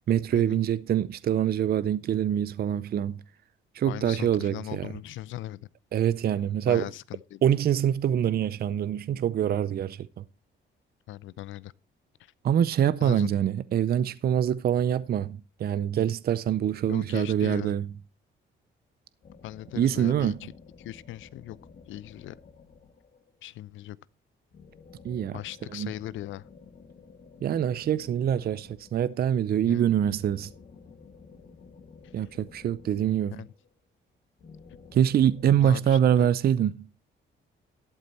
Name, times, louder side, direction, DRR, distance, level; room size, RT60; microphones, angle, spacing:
voice 1, 0.1-3.2 3.7-4.9 5.9-6.9 7.4-10.1 12.4-17.9 19.8-20.3 25.0-25.4 25.7-25.9 27.4-30.5 32.1-33.4 34.9-36.9, right 10 dB, 50° right, 0.5 m, -25 dB
voice 2, 3.9-5.7 6.7-7.4 11.1-11.7 12.2-12.3 13.0-13.3 16.9-17.8 19.4-20.5 20.8-21.6 21.9-22.4 23.4-24.0 25.3-26.5 29.6-29.9 32.2-32.3 33.3-33.5 35.4-36.3, left 14 dB, 80° left, 0.6 m, -39 dB
sound 1, 19.2-23.4 24.5-29.2 29.8-33.8 34.4-36.1, left 5 dB, 45° left, 2.1 m, -52 dB
12.0 x 8.2 x 4.2 m
cardioid pair, 90°, 20 cm